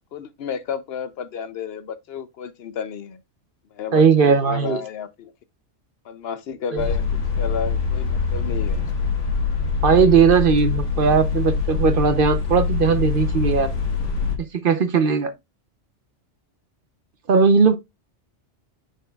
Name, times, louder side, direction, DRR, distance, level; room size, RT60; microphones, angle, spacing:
voice 1, 0.1-3.2 3.7-5.3 6.0-8.9, left 7 dB, 65° left, 0.8 m, -32 dB
voice 2, 3.9-4.8 6.7-6.8 9.8-13.7 14.5-15.3 17.3-17.7, right 6 dB, 55° right, 0.8 m, -18 dB
sound 1, 6.8-14.4, left 5 dB, 90° left, 1.8 m, -24 dB
9.8 x 4.5 x 2.2 m
omnidirectional pair, 1.2 m